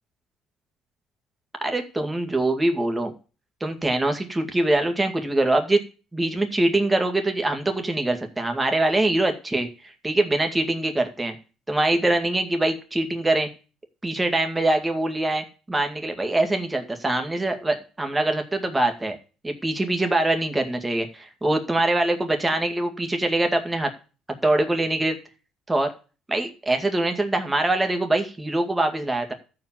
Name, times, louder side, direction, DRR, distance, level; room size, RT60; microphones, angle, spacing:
voice 1, 1.6-3.1 3.6-5.8 6.1-11.4 11.7-13.5 14.0-19.2 19.4-23.9 24.4-25.2 25.7-25.9 26.3-29.3, right 2 dB, 15° right, 5 dB, 2.1 m, -23 dB
13.5 x 4.9 x 7.5 m, 0.35 s
cardioid pair, 105°, 0 cm